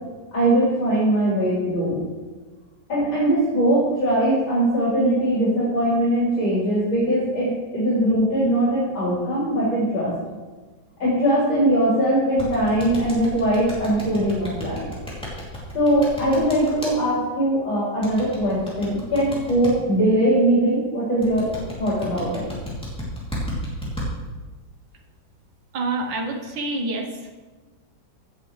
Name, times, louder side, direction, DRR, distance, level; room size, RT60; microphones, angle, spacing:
voice 1, 0.3-2.0 2.9-10.1 11.0-14.8 15.7-21.5 21.8-22.4, right 1 dB, 80° left, -10 dB, 4.7 m, -21 dB
sound 1, 12.4-16.9 18.0-19.7 21.2-24.1, left 1 dB, 5° left, 2.8 m, -33 dB
voice 2, 25.7-27.3, right 2 dB, 75° right, 3 dB, 1.8 m, -27 dB
16.0 x 8.3 x 3.3 m, 1.3 s
omnidirectional pair, 2.1 m